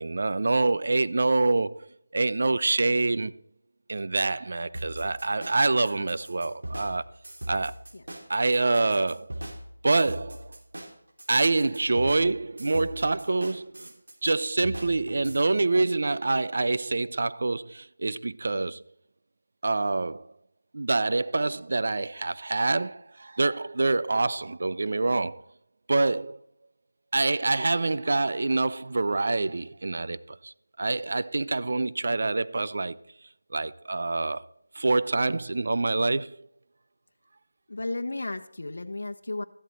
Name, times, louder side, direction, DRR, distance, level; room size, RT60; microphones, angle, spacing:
voice 1, 0.0-1.9 2.1-3.3 3.9-7.1 7.5-7.8 8.3-9.3 9.8-10.5 11.3-13.9 14.2-18.8 19.6-20.3 20.7-25.4 25.9-26.4 27.1-33.0 33.5-34.4 34.7-36.4, right 3 dB, 55° right, 0.6 m, -26 dB
sound 1, 4.7-15.4, right 1 dB, 80° right, 3.6 m, -40 dB
voice 2, 37.7-39.4, left 2 dB, 65° left, 1.0 m, -33 dB
14.0 x 12.5 x 4.4 m
figure-of-eight pair, 170°, 0 cm